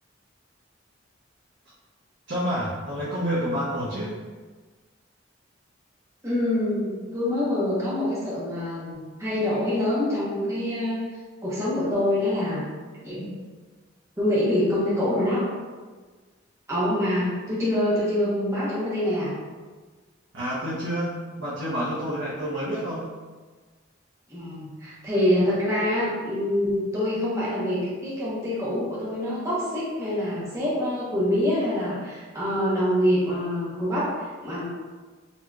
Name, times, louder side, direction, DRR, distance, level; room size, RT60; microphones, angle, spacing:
voice 1, 2.3-4.2 20.3-23.1, equal, 70° right, -9 dB, 0.9 m, -28 dB
voice 2, 6.2-11.0 11.4-12.6 13.0-13.3 14.2-15.4 16.7-19.3 24.3-34.1 34.4-34.6, left 1 dB, 15° right, -9 dB, 1.0 m, -25 dB
4.1 x 2.9 x 2.3 m, 1.4 s
head